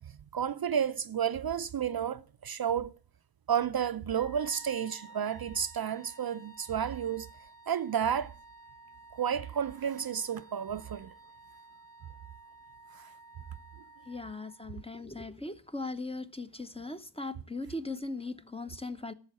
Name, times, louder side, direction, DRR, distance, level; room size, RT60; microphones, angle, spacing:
voice 1, 0.0-2.9 3.5-7.3 7.7-8.3 9.1-11.1 12.9-13.1, right 8 dB, 50° right, 0.6 m, -31 dB
Wind instrument woodwind instrument, 4.1-14.9, right 2 dB, 70° left, 1.8 m, -54 dB
voice 2, 14.1-19.1, left 2 dB, 15° left, 0.9 m, -39 dB
11.0 x 7.2 x 7.4 m
cardioid pair, 45°, 45 cm